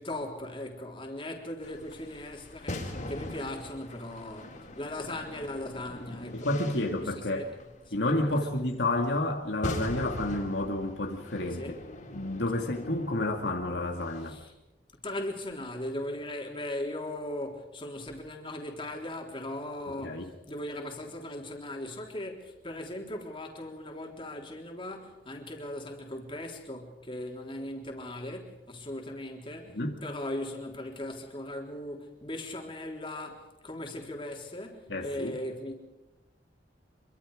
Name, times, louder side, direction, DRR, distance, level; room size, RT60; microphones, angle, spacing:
voice 1, 0.0-7.6 8.1-8.6 11.5-11.8 12.5-12.6 14.3-14.5 15.0-35.7, left 1 dB, 30° left, 3.8 m, -38 dB
sound 1, 1.6-14.4, left 1 dB, 45° left, 4.0 m, -42 dB
voice 2, 6.3-7.4 7.9-11.7 12.1-14.4 20.0-20.3 29.7-30.0 34.9-35.3, left 1 dB, 75° left, 2.2 m, -30 dB
26.0 x 24.0 x 5.1 m
head